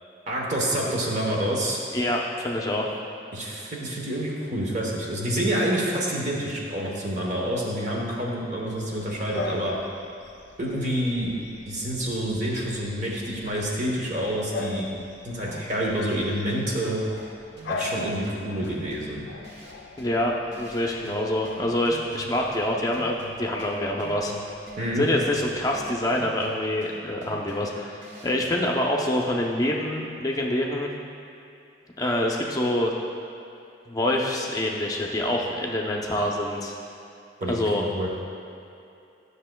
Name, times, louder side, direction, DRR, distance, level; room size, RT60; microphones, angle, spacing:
voice 1, 0.3-1.8 3.3-9.8 10.6-14.9 15.2-17.0 17.7-19.3 24.8-25.1 37.4-38.1, right 1 dB, 40° right, -3 dB, 1.0 m, -28 dB
voice 2, 1.9-2.9 20.0-24.3 25.0-27.9 28.2-30.9 32.0-32.9 33.9-36.7 37.5-37.8, left 1 dB, 20° left, -1 dB, 0.6 m, -26 dB
Bark / Bird vocalization bird call bird song, 8.7-26.2, left 3 dB, 75° left, 0.4 m, -41 dB
sound 1, 15.5-28.5, right 2 dB, 85° right, 1.1 m, -46 dB
10.0 x 6.4 x 2.2 m, 2.7 s
head